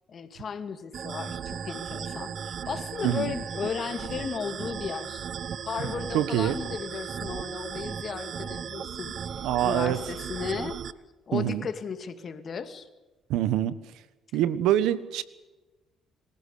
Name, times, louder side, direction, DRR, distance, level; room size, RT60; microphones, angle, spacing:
voice 1, 0.1-5.3 5.7-10.8 11.3-12.9, left 6 dB, 50° left, 9 dB, 2.4 m, -35 dB
sound 1, 0.9-10.9, right 7 dB, 55° right, 0.9 m, -36 dB
voice 2, 3.0-3.3 6.1-6.6 9.4-10.0 11.3-11.6 13.3-13.7 14.3-15.2, right 12 dB, 85° right, 16 dB, 1.3 m, -25 dB
26.0 x 15.5 x 8.5 m, 1.1 s
cardioid pair, 85°, 0 cm